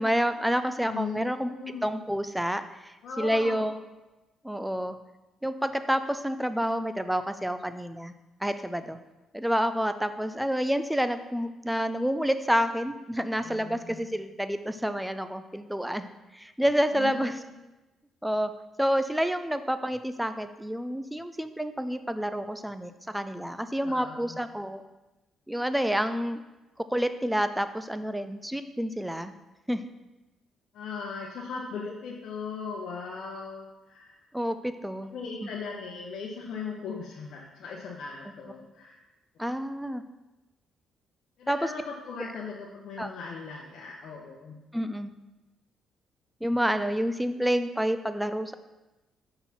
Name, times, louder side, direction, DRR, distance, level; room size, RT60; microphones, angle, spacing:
voice 1, 0.0-1.5 1.8-3.8 4.4-5.0 5.4-8.1 8.4-9.0 9.3-17.4 18.2-18.5 18.8-24.8 25.5-26.4 26.9-29.3 29.7-29.8 34.3-35.1 35.4-35.5 39.4-40.0 41.5-41.6 43.0-43.1 44.7-45.2 46.4-48.5, equal, 5° right, 11 dB, 0.4 m, -29 dB
voice 2, 0.9-2.0 3.0-3.7 13.3-14.0 16.9-17.5 23.8-24.4 30.7-34.2 35.1-39.0 41.4-44.6, left 5 dB, 70° left, -3 dB, 0.9 m, -39 dB
5.9 x 3.9 x 5.9 m, 1.1 s
cardioid pair, 90°, 0 cm